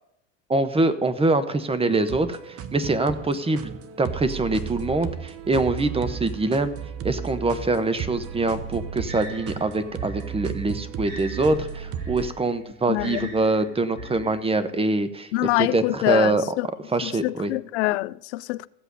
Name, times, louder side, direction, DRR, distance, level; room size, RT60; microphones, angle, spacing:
voice 1, 0.5-3.7 4.0-6.7 7.0-15.3 15.6-16.4 16.9-17.5, right 2 dB, 15° right, 1.1 m, -24 dB
sound 1, 1.9-12.3, right 8 dB, 40° right, 1.1 m, -35 dB
sound 2, 9.0-14.4, right 2 dB, 80° right, 4.0 m, -41 dB
voice 2, 12.9-13.3 15.3-16.7 17.0-18.7, left 19 dB, 65° left, 0.5 m, -25 dB
15.0 x 8.1 x 5.4 m
hypercardioid pair, 75°, 36 cm